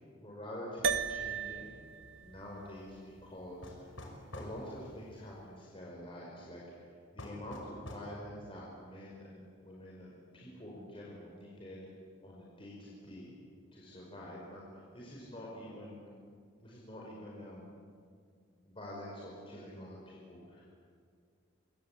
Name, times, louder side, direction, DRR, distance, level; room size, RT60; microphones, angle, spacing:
voice 1, 0.2-1.7 2.2-3.9 4.3-11.8 12.2-13.3 13.7-16.0 16.6-17.8 18.6-20.6, left 1 dB, 25° left, -4 dB, 5.3 m, -47 dB
sound 1, 0.8-5.4, right 5 dB, 75° right, 1.1 m, -39 dB
sound 2, 3.6-4.6 7.2-8.1, left 1 dB, 70° left, 5.9 m, -46 dB
27.0 x 25.0 x 8.6 m, 2.2 s
head